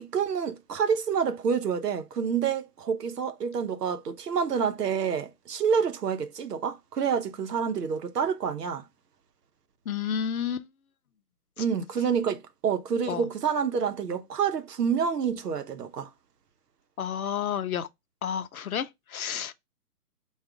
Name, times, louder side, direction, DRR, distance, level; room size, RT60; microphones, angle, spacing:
voice 1, 0.0-8.9 11.6-16.1, right 6 dB, 80° right, 0.8 m, -28 dB
voice 2, 9.9-10.7 13.1-13.3 17.0-17.9 18.2-19.5, left 8 dB, 65° left, 0.6 m, -30 dB
4.8 x 2.4 x 3.4 m
hypercardioid pair, 160°, 46 cm